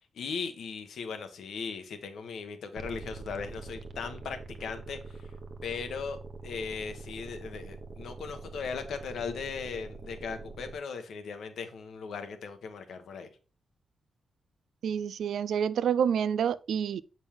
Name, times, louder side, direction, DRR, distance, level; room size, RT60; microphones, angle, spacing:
voice 1, 0.1-5.3 5.6-13.3, left 5 dB, 85° left, 1.1 m, -38 dB
sound 1, 2.8-10.8, right 3 dB, 50° right, 0.9 m, -44 dB
voice 2, 14.8-17.0, right 8 dB, 85° right, 0.3 m, -28 dB
7.0 x 5.4 x 3.5 m
wide cardioid pair, 125°, 0 cm